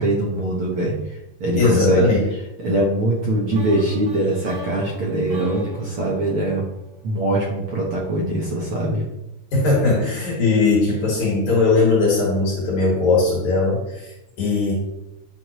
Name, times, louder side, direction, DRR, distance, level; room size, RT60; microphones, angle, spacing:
voice 1, 0.0-2.1 2.6-6.7 7.0-9.0, right 1 dB, 60° right, -3 dB, 1.6 m, -22 dB
voice 2, 1.6-2.2 9.5-14.7, left 3 dB, 70° left, -5 dB, 3.0 m, -19 dB
sound 1, 3.5-7.5, right 2 dB, 75° right, 0.9 m, -37 dB
9.6 x 6.0 x 3.0 m, 0.92 s
omnidirectional pair, 3.5 m